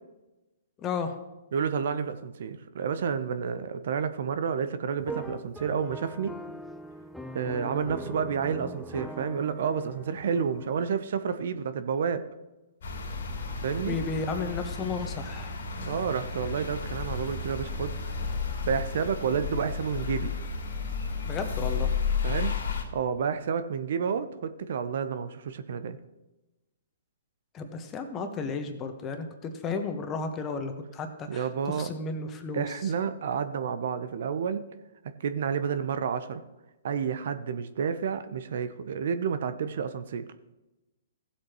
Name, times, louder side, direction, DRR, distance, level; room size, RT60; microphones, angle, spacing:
voice 1, 0.8-1.1 13.8-15.5 21.2-21.9 27.5-32.9, left 4 dB, 25° left, 6 dB, 1.3 m, -33 dB
voice 2, 1.5-6.3 7.3-12.2 13.6-14.0 15.8-17.9 18.6-20.3 22.2-22.5 22.9-26.0 31.3-31.9 32.5-34.6 35.2-36.4 36.8-40.2, right 6 dB, 60° right, 11 dB, 0.7 m, -30 dB
sound 1, 5.0-10.9, right 1 dB, ahead, 0.5 m, -41 dB
sound 2, 12.8-22.8, left 5 dB, 60° left, 2.4 m, -32 dB
16.5 x 7.8 x 3.0 m, 1.0 s
hypercardioid pair, 125°, 0 cm